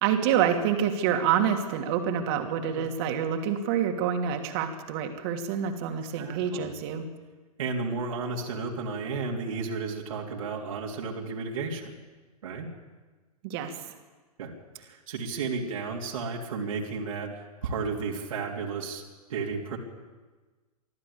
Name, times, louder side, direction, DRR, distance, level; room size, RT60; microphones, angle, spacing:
voice 1, 0.0-7.0 13.4-13.7, right 8 dB, 40° right, 5 dB, 2.8 m, -27 dB
voice 2, 6.0-6.7 7.6-11.9 12.4-12.7 14.4-14.5 14.7-19.0 19.3-19.8, right 4 dB, 55° right, -2 dB, 3.2 m, -33 dB
24.5 x 14.0 x 8.7 m, 1.3 s
figure-of-eight pair, 110°, 20 cm